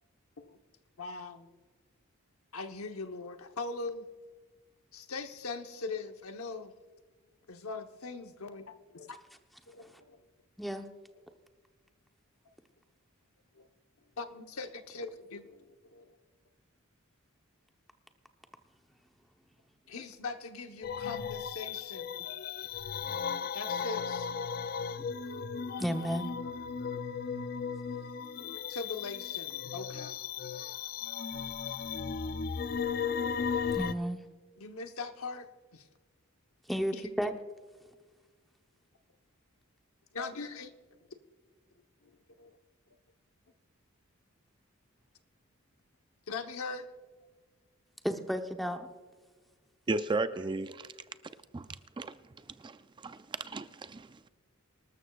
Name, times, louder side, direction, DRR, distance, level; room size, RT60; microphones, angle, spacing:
voice 1, 1.0-1.5 2.5-4.1 4.9-6.7 7.5-9.1 9.7-10.2 13.6-13.7 14.2-15.7 15.9-16.1 19.9-22.2 23.5-24.3 27.9-28.0 28.4-30.1 34.6-35.4 35.7-35.8 36.9-37.0 40.1-40.7 42.4-42.6 46.3-46.9, left 4 dB, 85° left, 1.0 m, -41 dB
sound 1, 20.8-33.9, left 6 dB, 45° left, 0.4 m, -36 dB
voice 2, 25.8-26.3 33.7-34.2 36.7-37.3 48.0-48.9, equal, ahead, 0.7 m, -32 dB
voice 3, 49.9-50.9 51.5-54.3, right 3 dB, 20° right, 0.4 m, -36 dB
25.0 x 13.0 x 2.4 m
head